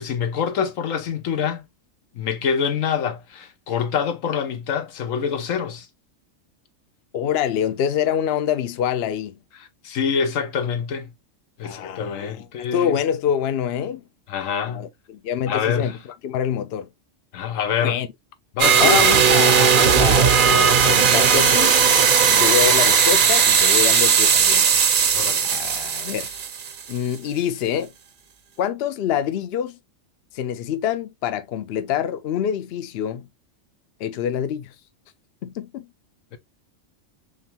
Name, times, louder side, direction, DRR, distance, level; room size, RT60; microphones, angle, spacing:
voice 1, 0.0-1.6 2.2-5.9 9.8-11.1 11.6-13.0 14.3-14.9 15.5-16.0 17.3-18.0 18.5-19.0 25.1-25.5, left 7 dB, 80° left, 1.2 m, -25 dB
voice 2, 7.1-9.3 11.6-12.4 12.7-14.0 14.7-15.9 16.2-16.9 17.8-18.1 18.8-21.8 22.2-24.8 25.1-26.4 26.9-27.9 28.6-29.8 30.3-33.3 34.0-34.7 35.4-35.9, left 9 dB, 60° left, 0.7 m, -26 dB
sound 1, 18.6-26.9, right 7 dB, 50° right, 0.7 m, -17 dB
3.8 x 3.5 x 2.7 m
omnidirectional pair, 1.3 m